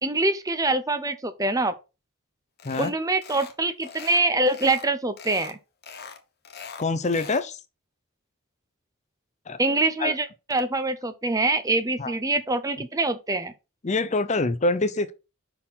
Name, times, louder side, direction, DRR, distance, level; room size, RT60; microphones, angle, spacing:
voice 1, 0.0-1.7 2.8-5.6 9.6-13.5, right 2 dB, 15° right, 0.6 m, -24 dB
sound 1, 2.6-2.9 3.2-3.6 3.8-4.9 5.2-5.5 5.8-7.5, left 6 dB, 45° left, 1.1 m, -41 dB
voice 2, 6.8-7.6 9.5-9.6 10.0-10.1 12.0-12.1 13.8-15.1, left 3 dB, 30° left, 0.6 m, -25 dB
5.7 x 4.4 x 5.6 m
head